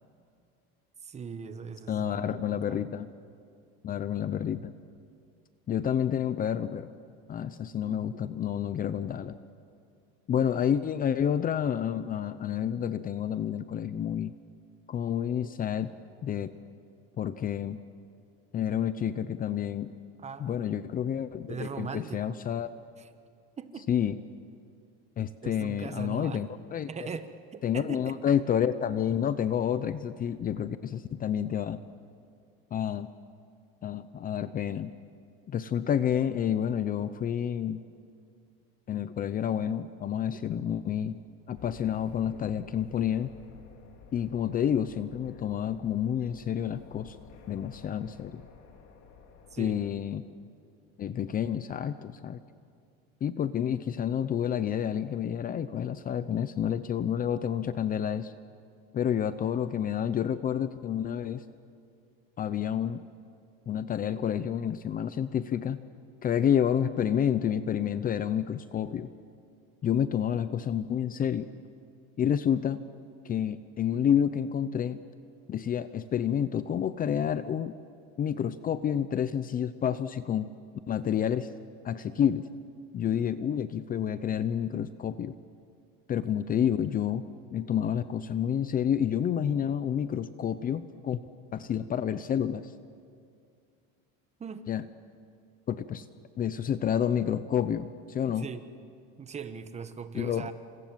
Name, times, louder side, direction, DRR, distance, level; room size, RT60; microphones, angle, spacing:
voice 1, 1.0-2.8 20.2-20.6 21.5-22.4 23.0-23.1 23.6-23.9 25.4-26.4 26.9-28.4 49.5-49.8 94.4-94.7 98.3-98.7 99.2-100.5, right 6 dB, 20° right, 10 dB, 1.3 m, -40 dB
voice 2, 1.9-3.1 3.8-4.7 5.7-6.9 7.3-9.4 10.3-14.3 14.9-15.9 16.2-16.5 17.2-17.8 18.5-19.9 20.4-22.7 23.9-24.2 25.2-26.9 27.6-31.8 32.7-33.1 33.8-34.9 35.5-37.8 38.9-41.2 41.5-43.3 44.1-47.2 47.5-48.4 49.6-50.2 51.0-52.4 53.2-58.3 58.9-61.4 62.4-63.0 63.7-65.8 66.2-69.1 69.8-71.5 72.2-72.8 73.2-75.0 75.5-77.8 78.2-80.5 80.9-81.5 81.8-82.5 82.9-85.3 86.1-91.2 91.5-92.7 94.7-94.8 95.7-96.0 96.4-98.5 100.1-100.5, left 9 dB, 30° left, 13 dB, 0.7 m, -29 dB
sound 1, 41.5-50.0, left 6 dB, 50° left, 2.9 m, -53 dB
29.0 x 27.0 x 7.6 m, 2.3 s
cardioid pair, 140°, 31 cm